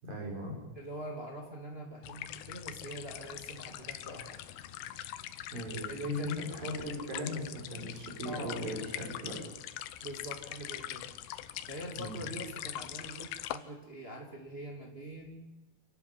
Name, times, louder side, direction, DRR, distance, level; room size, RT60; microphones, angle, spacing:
voice 1, 0.0-0.6 5.5-9.4 12.0-12.3, left 1 dB, 50° right, -1 dB, 6.5 m, -38 dB
voice 2, 0.7-4.4 5.8-6.5 8.2-8.7 10.0-11.1 11.7-15.5, right 1 dB, 20° right, 1 dB, 1.9 m, -44 dB
sound 1, 2.0-13.6, left 13 dB, 75° left, 2.4 m, -43 dB
28.5 x 11.5 x 9.9 m, 1.0 s
omnidirectional pair, 5.2 m